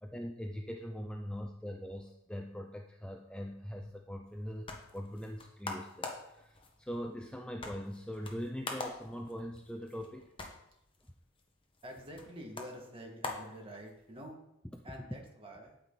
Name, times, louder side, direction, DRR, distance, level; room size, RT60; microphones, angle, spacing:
voice 1, 0.0-10.3 14.7-14.8, equal, 5° left, 3 dB, 0.5 m, -42 dB
sound 1, 4.3-14.2, left 3 dB, 25° left, 1.3 m, -46 dB
voice 2, 11.8-14.4 14.8-15.8, equal, 25° right, 0 dB, 2.0 m, -47 dB
9.1 x 8.8 x 4.1 m, 0.81 s
head